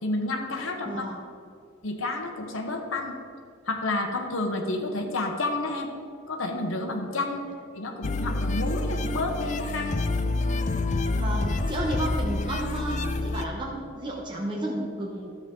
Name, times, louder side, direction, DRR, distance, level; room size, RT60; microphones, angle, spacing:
voice 1, 0.0-1.0 1.8-3.1 3.7-5.9 6.3-7.4 7.7-9.9, left 2 dB, 85° left, 3 dB, 1.1 m, -30 dB
voice 2, 0.8-1.2 11.1-15.3, right 1 dB, 25° right, -2 dB, 0.9 m, -32 dB
sound 1, 8.0-13.5, left 2 dB, 35° left, 0.4 m, -27 dB
12.0 x 7.3 x 3.8 m, 2.3 s
head